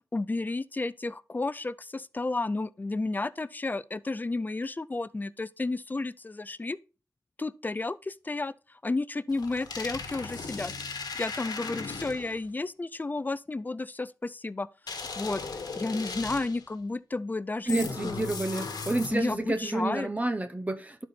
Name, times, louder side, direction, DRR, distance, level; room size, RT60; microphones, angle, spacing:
voice 1, 0.1-6.8 7.4-10.7 11.2-14.7 15.2-15.4 15.8-18.3 19.1-20.1, left 3 dB, 25° left, 0.4 m, -32 dB
sound 1, 9.3-12.4 14.9-16.7 17.7-19.4, left 4 dB, 80° left, 1.3 m, -37 dB
voice 2, 17.7-21.0, right 2 dB, 20° right, 0.6 m, -30 dB
11.5 x 4.3 x 4.2 m
wide cardioid pair, 75°, 7 cm